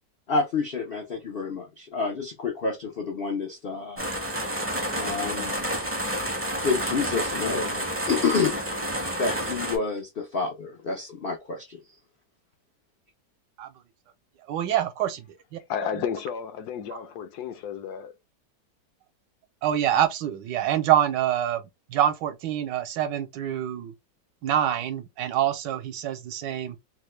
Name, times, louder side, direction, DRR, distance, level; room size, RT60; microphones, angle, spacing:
voice 1, 0.3-4.0 4.9-5.6 6.6-8.6 9.2-11.8, left 4 dB, 90° left, 0.5 m, -29 dB
sound 1, 4.0-9.8, equal, 15° right, 0.5 m, -29 dB
voice 2, 14.5-15.6 19.6-21.6 21.9-23.9 24.4-26.8, right 11 dB, 80° right, 1.3 m, -26 dB
voice 3, 15.7-18.1, left 8 dB, 70° left, 1.0 m, -32 dB
3.3 x 2.2 x 3.1 m
omnidirectional pair, 1.9 m